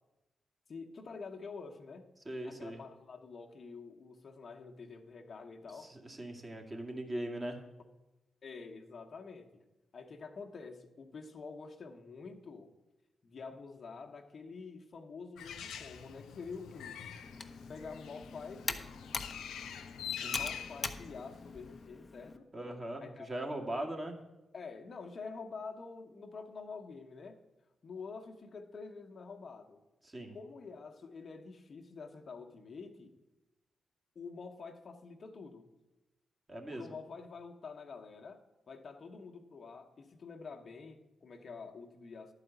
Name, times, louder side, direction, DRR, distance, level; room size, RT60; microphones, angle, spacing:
voice 1, 0.7-2.0 2.4-5.9 8.4-9.5 9.9-12.7 13.2-17.1 17.7-18.8 20.3-22.5 23.0-23.8 24.5-27.4 27.8-29.8 30.3-33.2 34.1-35.7 36.7-38.4 38.7-42.3, left 4 dB, 55° left, 3 dB, 1.1 m, -47 dB
voice 2, 2.3-2.8 5.8-7.6 20.2-20.4 22.5-24.2 30.0-30.3 36.5-36.9, right 1 dB, 30° right, 1 dB, 2.1 m, -40 dB
Bird, 15.4-21.9, left 8 dB, 85° left, 0.6 m, -45 dB
Computer keyboard, 17.2-22.4, left 3 dB, 35° left, 0.9 m, -43 dB
11.0 x 4.9 x 8.0 m, 1.0 s
supercardioid pair, 50°, 0 cm